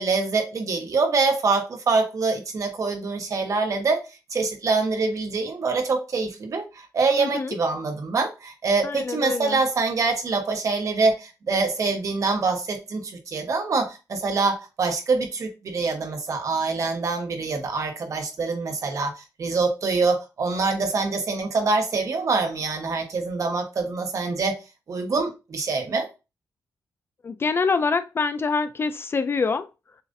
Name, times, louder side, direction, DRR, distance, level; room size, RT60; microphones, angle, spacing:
voice 1, 0.0-4.0 4.3-24.6 24.9-26.1, right 4 dB, 50° right, 1.1 m, -25 dB
voice 2, 7.2-7.6 8.8-9.6 27.2-29.7, left 4 dB, 35° left, 0.3 m, -25 dB
6.9 x 2.5 x 2.6 m
wide cardioid pair, 120°, 7 cm